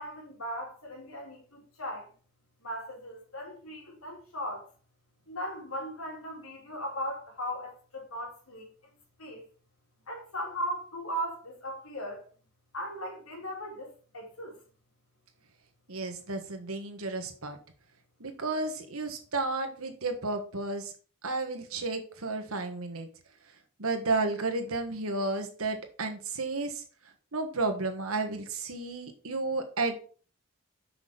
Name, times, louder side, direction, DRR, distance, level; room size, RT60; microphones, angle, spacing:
voice 1, 0.0-2.1 2.6-4.7 5.3-8.7 9.2-9.4 10.1-12.2 12.7-14.6, equal, 85° left, 3.4 m, -38 dB
voice 2, 15.9-17.6 18.2-20.9 21.2-23.1 23.8-26.8 27.3-30.0, right 3 dB, 85° right, 1.6 m, -32 dB
6.2 x 6.0 x 5.2 m
head